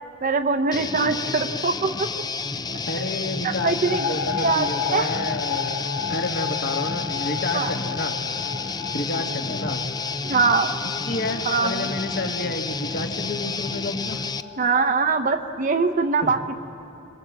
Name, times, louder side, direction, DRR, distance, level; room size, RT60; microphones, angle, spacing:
voice 1, 0.2-2.1 2.7-2.8 3.4-4.1 4.4-5.1 7.5-7.7 10.2-10.7 11.4-11.9 14.6-16.6, right 4 dB, 40° right, 6 dB, 0.7 m, -23 dB
Guitar, 0.7-14.4, left 4 dB, 20° left, 0.5 m, -30 dB
voice 2, 2.9-3.8 4.1-5.8 6.1-8.2 8.9-9.9 10.8-14.2 16.2-16.3, left 2 dB, 55° left, 2 dB, 2.0 m, -30 dB
sound 1, 3.8-15.0, left 8 dB, 85° left, 0.5 m, -34 dB
27.0 x 23.5 x 7.6 m, 2.8 s
head